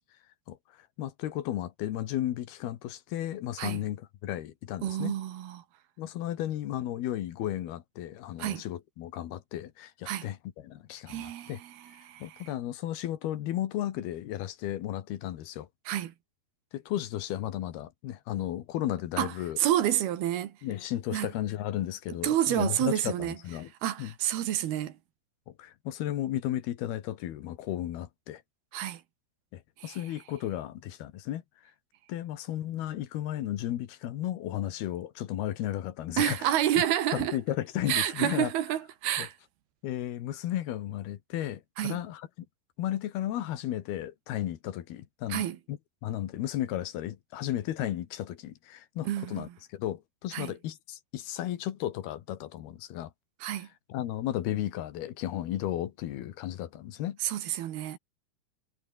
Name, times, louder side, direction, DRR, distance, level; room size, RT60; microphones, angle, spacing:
voice 1, 1.0-5.2 6.0-11.6 12.2-15.7 16.7-19.6 20.6-23.7 24.0-24.1 25.5-28.4 29.5-31.4 32.1-36.5 37.1-38.5 39.2-39.3 39.8-42.3 42.8-53.1 53.9-57.2, left 12 dB, 75° left, 3.4 m, -34 dB
voice 2, 4.8-5.6 8.4-8.6 10.1-10.3 11.1-12.5 15.9-16.1 19.2-20.5 21.1-21.3 22.1-23.4 23.8-24.9 28.7-29.0 29.8-30.0 36.2-37.4 37.9-39.4 41.8-42.0 45.3-45.6 49.1-49.5 50.3-50.5 53.4-53.7 57.2-58.0, right 12 dB, 75° right, 3.5 m, -29 dB
omnidirectional pair, 4.6 m